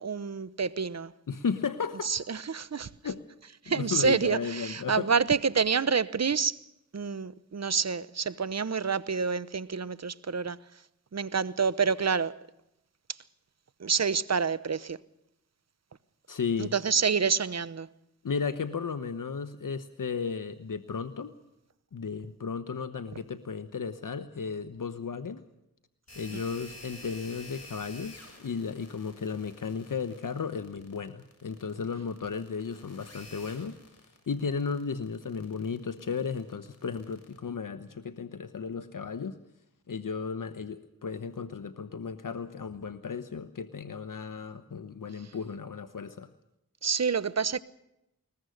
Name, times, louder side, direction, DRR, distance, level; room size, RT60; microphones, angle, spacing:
voice 1, 0.0-1.1 2.0-2.9 3.6-6.6 6.9-10.6 11.1-12.4 13.8-15.0 16.6-17.9 26.3-26.4 46.8-47.6, right 5 dB, 50° right, 0.9 m, -28 dB
voice 2, 1.3-2.1 3.0-3.2 3.7-5.1 16.3-16.7 18.2-21.4 21.9-25.4 26.2-33.8 34.3-39.4 39.9-46.3, left 5 dB, 65° left, 1.1 m, -34 dB
sound 1, 26.1-37.4, left 2 dB, 45° left, 6.8 m, -50 dB
21.0 x 20.5 x 6.5 m
cardioid pair, 40°, 34 cm